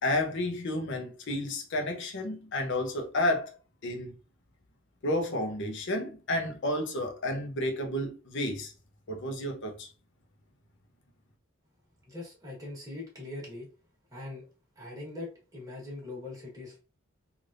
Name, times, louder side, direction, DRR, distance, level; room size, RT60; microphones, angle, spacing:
voice 1, 0.0-3.5 3.8-4.1 5.0-8.7 9.1-9.9, left 1 dB, 60° left, 0.7 m, -31 dB
voice 2, 12.1-13.7 14.1-14.5 14.8-16.8, left 2 dB, 15° right, 1.3 m, -41 dB
3.3 x 2.5 x 2.5 m
head